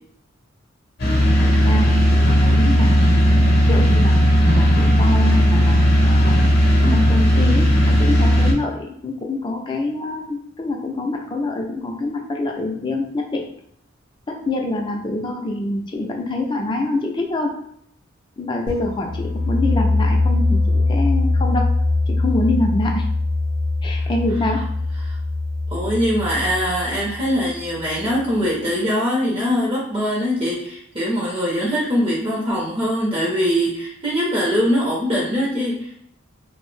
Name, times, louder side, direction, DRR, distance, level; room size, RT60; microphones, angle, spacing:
sound 1, 1.0-8.5, equal, 50° left, 0.7 m, -15 dB
voice 1, 1.6-4.2 4.5-6.3 6.9-13.4 14.3-17.5 18.4-21.7 22.1-23.0 23.8-24.6, left 2 dB, 25° left, 1 dB, 0.4 m, -25 dB
sound 2, 18.7-28.3, left 2 dB, 65° right, 0.6 m, -22 dB
voice 2, 25.7-35.9, equal, 25° right, -4 dB, 0.6 m, -22 dB
2.6 x 2.0 x 3.1 m, 0.70 s
head